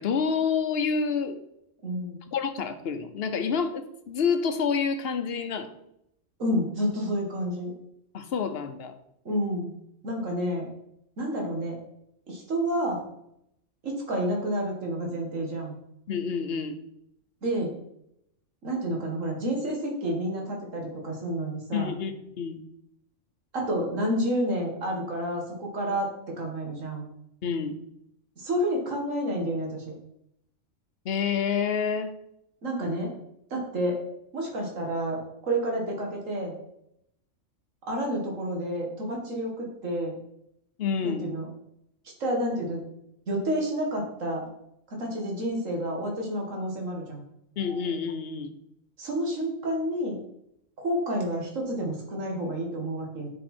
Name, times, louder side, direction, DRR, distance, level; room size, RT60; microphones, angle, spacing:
voice 1, 0.0-1.4 2.3-5.7 8.1-9.0 16.1-16.8 21.7-22.1 22.4-22.6 27.4-27.8 31.0-32.1 40.8-41.3 47.6-48.6, left 6 dB, 55° left, 8 dB, 1.0 m, -28 dB
voice 2, 1.8-2.2 6.4-7.7 9.3-9.7 10.0-10.7 11.2-11.8 12.3-13.0 13.8-15.8 17.4-17.7 18.6-22.0 23.5-27.1 28.4-29.9 32.6-33.1 33.5-34.0 34.3-36.6 37.9-40.2 41.0-41.5 42.2-42.8 43.3-44.5 44.9-47.2 49.0-50.2 50.8-53.3, equal, 80° right, 0 dB, 2.1 m, -29 dB
9.3 x 5.4 x 4.3 m, 0.78 s
omnidirectional pair, 1.3 m